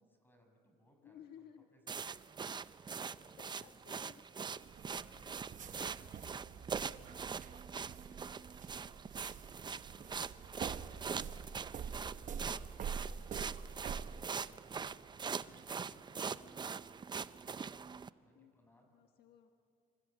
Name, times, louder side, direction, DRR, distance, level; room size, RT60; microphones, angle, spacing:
voice 1, 0.0-2.2 2.8-3.7 4.9-6.3 6.7-9.1 9.8-11.7 12.0-17.8 18.2-18.9, equal, 10° left, 3 dB, 6.4 m, -67 dB
voice 2, 1.0-1.7 3.4-4.6 18.3-18.5 18.9-19.5, left 9 dB, 70° left, 4 dB, 1.5 m, -58 dB
sound 1, 1.9-18.1, right 6 dB, 25° right, 0.6 m, -43 dB
sound 2, 4.6-14.3, right 7 dB, 50° right, 1.1 m, -46 dB
26.5 x 26.0 x 8.6 m, 2.4 s
cardioid pair, 110°, 17 cm